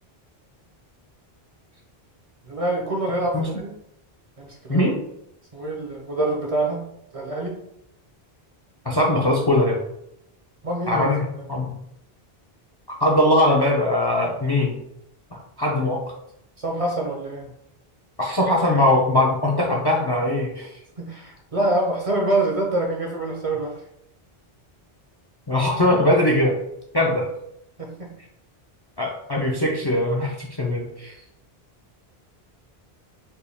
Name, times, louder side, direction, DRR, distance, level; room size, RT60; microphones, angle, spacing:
voice 1, 2.4-3.7 4.4-4.9 5.5-6.8 7.1-7.6 10.6-11.5 16.6-17.5 21.0-23.7 27.8-28.1, right 2 dB, 40° right, 0 dB, 0.6 m, -26 dB
voice 2, 8.8-9.8 10.9-11.7 13.0-14.8 15.3-16.0 18.2-20.7 25.5-26.6 26.9-27.3 29.0-31.1, left 1 dB, 35° left, -2 dB, 0.4 m, -21 dB
4.3 x 2.2 x 3.4 m, 0.78 s
omnidirectional pair, 1.0 m